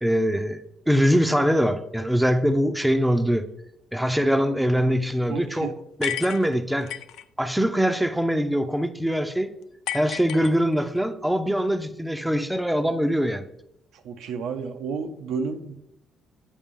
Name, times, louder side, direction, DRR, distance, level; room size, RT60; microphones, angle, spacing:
voice 1, 0.0-3.5 3.9-6.9 7.4-9.5 9.9-13.4, equal, 5° right, 9 dB, 0.6 m, -23 dB
voice 2, 4.2-5.0 5.3-5.7 14.0-15.7, right 5 dB, 85° right, 7 dB, 0.7 m, -32 dB
sound 1, 6.0-7.2 9.9-11.0, left 12 dB, 90° left, 0.3 m, -33 dB
8.6 x 5.1 x 3.7 m, 0.81 s
cardioid pair, 90°, 0 cm